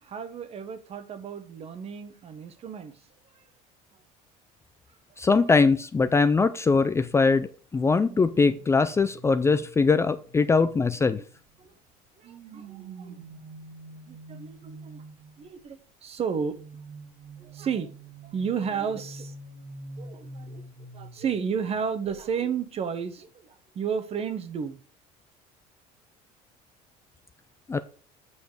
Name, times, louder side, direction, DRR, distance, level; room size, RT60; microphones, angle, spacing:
voice 1, 0.0-3.0 11.6-11.7 12.2-13.2 14.1-15.0 15.4-16.6 17.4-18.0 18.2-19.3 20.0-20.6 20.9-24.8, right 6 dB, 40° right, 1.2 m, -32 dB
voice 2, 5.2-11.2 27.7-27.8, left 4 dB, 15° left, 0.5 m, -22 dB
sound 1, 8.0-11.6 12.2-15.5 16.5-21.7 22.0-22.3, right 2 dB, 65° right, 2.2 m, -46 dB
8.3 x 5.1 x 4.9 m
cardioid pair, 130°, 16 cm